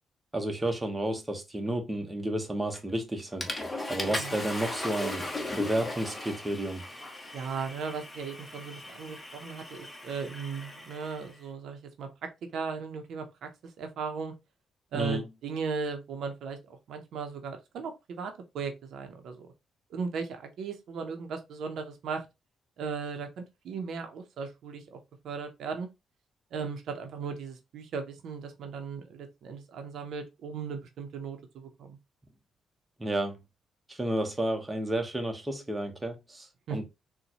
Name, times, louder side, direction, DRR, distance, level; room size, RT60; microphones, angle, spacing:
voice 1, 0.3-3.5 3.9-5.3 5.6-6.8 14.9-15.2 33.0-33.4 33.9-36.8, right 1 dB, 15° right, 0.9 m, -31 dB
Water / Toilet flush, 2.7-3.0 3.4-11.3, left 2 dB, 20° left, 0.8 m, -38 dB
voice 2, 7.3-13.5 13.8-14.3 14.9-16.6 16.9-19.5 19.9-22.3 22.8-25.0 25.2-25.9 26.5-32.0 36.7-36.8, right 5 dB, 75° right, 0.6 m, -37 dB
3.9 x 2.1 x 2.8 m
cardioid pair, 80°, 0 cm